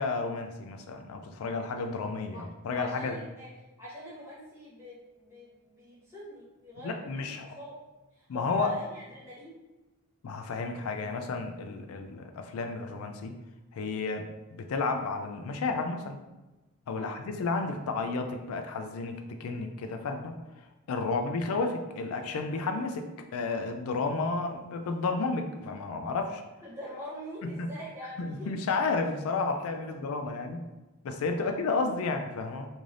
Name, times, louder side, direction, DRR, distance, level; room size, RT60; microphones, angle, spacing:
voice 1, 0.0-3.2 6.8-7.6 8.3-8.8 10.2-13.4 13.7-16.2 16.9-20.4 20.9-23.1 23.3-26.4 27.4-27.7 28.2-30.7 31.0-32.7, left 3 dB, 80° left, 6 dB, 0.4 m, -32 dB
voice 2, 2.7-3.5 3.8-7.8 8.1-9.5 17.0-17.2 21.0-21.3 26.6-28.5 31.4-31.6, equal, 10° right, -9 dB, 1.3 m, -44 dB
3.2 x 2.6 x 3.7 m, 1.1 s
head